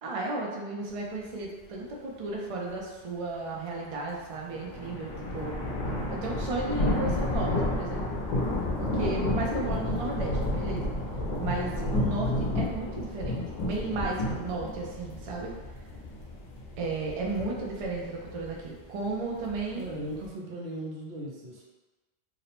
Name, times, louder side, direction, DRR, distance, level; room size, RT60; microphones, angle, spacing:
voice 1, 0.0-5.6 6.1-8.0 8.8-10.9 11.4-15.5 16.8-19.9, right 3 dB, 50° right, -2 dB, 0.4 m, -34 dB
sound 1, 4.3-20.3, left 1 dB, 55° left, 0.5 m, -31 dB
voice 2, 19.8-21.6, right 1 dB, 85° right, -3 dB, 0.9 m, -37 dB
2.6 x 2.0 x 2.9 m, 1.2 s
omnidirectional pair, 1.1 m